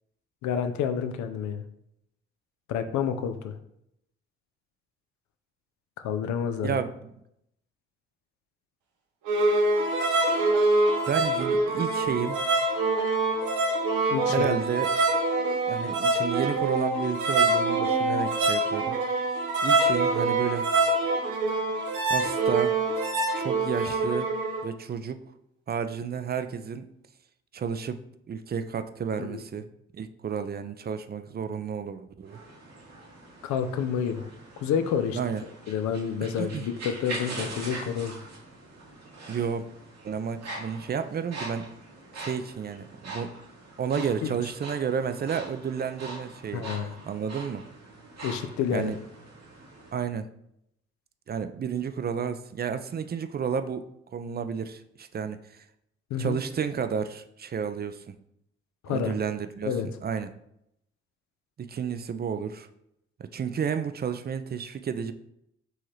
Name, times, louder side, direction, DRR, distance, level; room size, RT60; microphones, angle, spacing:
voice 1, 0.4-1.6 2.7-3.5 6.0-6.8 14.1-14.6 29.2-29.4 33.4-34.3 34.6-35.2 35.7-38.2 44.0-44.3 46.5-46.9 48.2-48.9 56.1-56.4 58.8-59.1 59.6-59.9, left 7 dB, 75° left, 8 dB, 0.5 m, -29 dB
voice 2, 6.6-7.1 11.1-12.4 14.3-14.9 15.7-19.0 19.6-20.7 22.1-22.8 23.4-24.3 24.6-25.2 25.7-26.9 27.5-29.7 29.9-32.4 35.1-35.4 36.4-36.6 39.3-39.7 40.0-41.7 42.1-43.3 43.8-46.7 47.0-47.7 48.7-49.0 49.9-50.3 51.3-53.9 54.1-55.6 56.2-58.0 58.9-59.8 60.0-60.3 61.6-62.7 63.2-65.1, right 7 dB, 35° right, 10 dB, 0.4 m, -31 dB
sound 1, 9.3-24.6, right 2 dB, 85° right, 0.7 m, -25 dB
sound 2, 32.2-49.9, right 2 dB, 60° right, 1.2 m, -43 dB
4.7 x 2.9 x 3.1 m, 0.77 s
hypercardioid pair, 45°, 29 cm